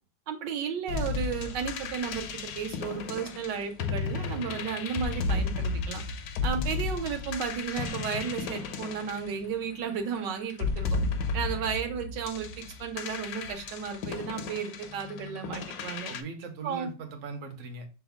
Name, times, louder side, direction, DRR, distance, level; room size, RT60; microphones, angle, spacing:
voice 1, 0.3-6.0 6.4-10.9 11.3-16.1 16.6-16.9, right 7 dB, 85° right, 5 dB, 1.3 m, -33 dB
sound 1, 0.9-9.9 10.5-16.2, left 4 dB, 75° left, 1.1 m, -33 dB
voice 2, 11.3-11.7 16.1-17.9, right 3 dB, 60° right, 5 dB, 0.9 m, -41 dB
5.6 x 2.1 x 3.3 m, 0.33 s
omnidirectional pair, 1.9 m